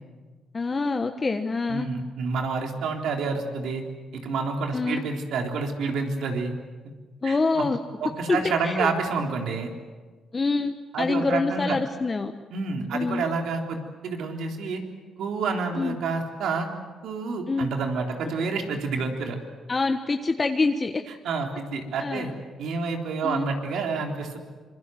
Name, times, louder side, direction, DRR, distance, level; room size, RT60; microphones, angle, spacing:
voice 1, 0.5-1.9 4.7-5.0 7.2-7.8 8.3-8.9 10.3-12.3 12.9-13.2 15.8-16.0 17.5-17.7 19.7-21.0 22.0-22.3 23.2-23.5, left 3 dB, 30° left, 6 dB, 1.3 m, -26 dB
voice 2, 1.7-3.8 4.1-6.5 7.2-7.6 8.0-9.7 10.9-11.8 12.5-14.8 15.2-16.7 17.0-19.4 21.2-22.3 22.6-24.4, right 4 dB, 75° right, 3 dB, 3.7 m, -28 dB
26.0 x 23.5 x 7.8 m, 1.4 s
cardioid pair, 90°, 0 cm